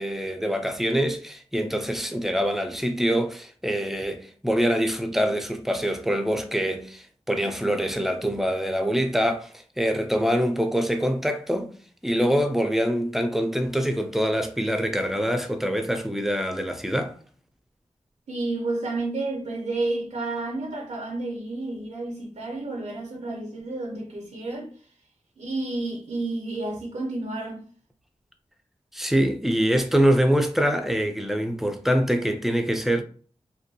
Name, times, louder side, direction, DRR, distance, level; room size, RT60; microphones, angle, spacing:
voice 1, 0.0-11.7 12.0-17.2 28.9-33.0, equal, 5° right, 0.3 m, -24 dB
voice 2, 18.3-24.7 25.4-27.6, right 2 dB, 80° right, 0.5 m, -30 dB
2.5 x 2.2 x 2.6 m
wide cardioid pair, 95°, 12 cm